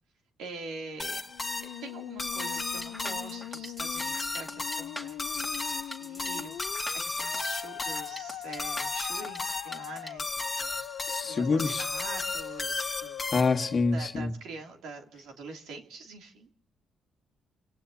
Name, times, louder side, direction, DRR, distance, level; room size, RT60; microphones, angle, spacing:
voice 1, 0.4-1.2 1.6-13.3 13.9-16.5, right 3 dB, 80° right, 2.7 m, -45 dB
sound 1, 1.0-13.8, left 3 dB, 20° left, 1.2 m, -35 dB
Musical instrument, 1.3-14.3, left 13 dB, 90° left, 0.5 m, -42 dB
sound 2, 2.6-10.1, left 1 dB, 5° right, 2.2 m, -43 dB
voice 2, 11.1-11.8 13.3-14.3, left 4 dB, 40° left, 1.5 m, -26 dB
29.0 x 18.0 x 2.8 m
cardioid pair, 90°, 0 cm